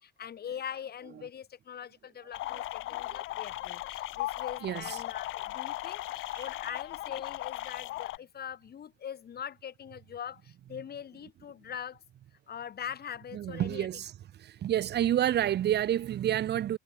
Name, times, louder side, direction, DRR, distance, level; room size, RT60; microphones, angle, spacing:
voice 1, 0.0-12.0 12.5-13.9, left 9 dB, 55° left, 1.4 m, -42 dB
sound 1, 2.3-8.2, left 17 dB, 80° left, 0.5 m, -37 dB
voice 2, 4.6-5.0 6.3-6.4 13.3-14.1 14.4-16.8, right 11 dB, 60° right, 0.6 m, -29 dB
cardioid pair, 90°, 20 cm